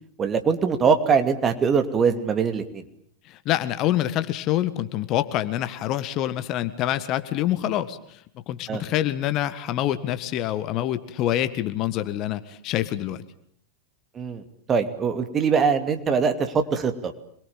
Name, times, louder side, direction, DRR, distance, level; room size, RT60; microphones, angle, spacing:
voice 1, 0.2-2.8 8.7-8.8 14.1-17.1, right 6 dB, 25° right, 8 dB, 2.7 m, -22 dB
voice 2, 3.2-13.2, left 13 dB, 35° left, 12 dB, 1.7 m, -26 dB
27.0 x 22.5 x 9.0 m, 0.64 s
figure-of-eight pair, 90°, 0 cm